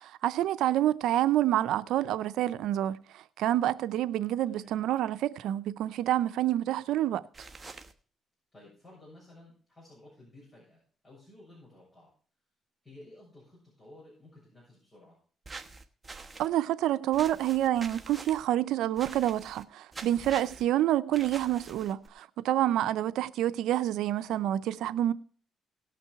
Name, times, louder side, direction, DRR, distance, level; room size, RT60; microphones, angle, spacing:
voice 1, 0.0-7.2 16.4-25.1, right 12 dB, 85° right, 0.5 m, -28 dB
voice 2, 4.5-4.8 8.5-12.1 12.8-15.2 20.4-20.7 22.6-23.0, left 1 dB, 30° left, 6.8 m, -54 dB
sound 1, 7.3-7.9 15.4-16.5 17.1-18.4 19.0-19.6 19.9-20.6 21.1-22.1, right 3 dB, 25° right, 1.1 m, -45 dB
18.0 x 6.0 x 4.7 m
cardioid pair, 90°, 0 cm